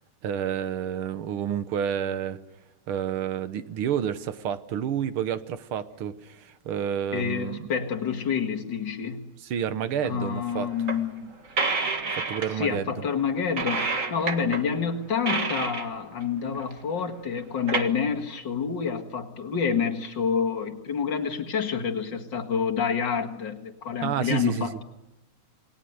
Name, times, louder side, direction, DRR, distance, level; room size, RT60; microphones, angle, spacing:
voice 1, 0.2-2.4 2.9-7.6 9.4-10.7 12.1-13.0 24.0-24.7, right 9 dB, 80° right, 13 dB, 2.0 m, -29 dB
voice 2, 7.1-9.3 10.0-11.3 12.6-24.8, left 6 dB, 55° left, 4 dB, 2.5 m, -28 dB
sound 1, 10.5-10.6 10.9-11.0 11.5-12.8 13.6-14.7 15.1-16.2 16.6-16.7 17.0-17.1 17.4-17.9, right 4 dB, 40° right, 2.0 m, -29 dB
28.5 x 20.5 x 8.0 m, 0.99 s
omnidirectional pair, 2.4 m